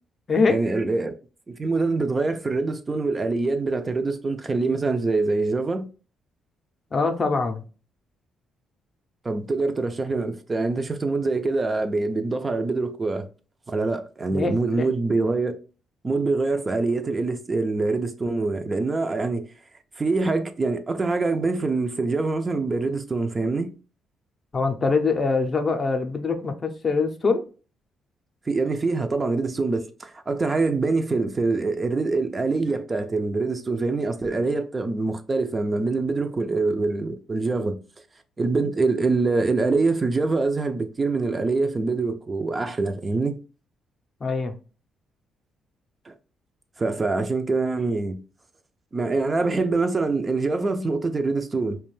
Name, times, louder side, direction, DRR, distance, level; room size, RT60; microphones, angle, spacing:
voice 1, 0.5-1.2 1.5-5.9 9.2-13.3 13.7-15.6 16.0-19.4 20.0-23.7 28.5-37.8 38.4-43.4 46.1-46.2 46.8-48.2 48.9-51.8, right 3 dB, 30° right, 0.3 m, -24 dB
voice 2, 6.9-7.6 14.3-14.9 24.5-27.4 44.2-44.5, left 4 dB, 35° left, 0.5 m, -23 dB
2.4 x 2.2 x 3.1 m
cardioid pair, 90°, 0 cm